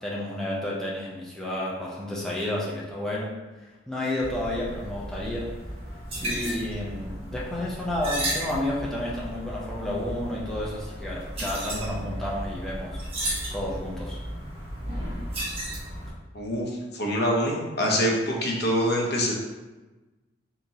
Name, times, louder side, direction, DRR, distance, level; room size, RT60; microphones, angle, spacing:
voice 1, 0.0-3.3 3.9-5.5 6.2-13.1 13.5-14.2, left 1 dB, 5° left, -6 dB, 0.5 m, -31 dB
sound 1, 4.2-16.1, right 1 dB, 30° right, 1.2 m, -34 dB
voice 2, 16.3-19.3, equal, 60° left, -1 dB, 0.7 m, -25 dB
3.6 x 2.9 x 2.8 m, 1.2 s
head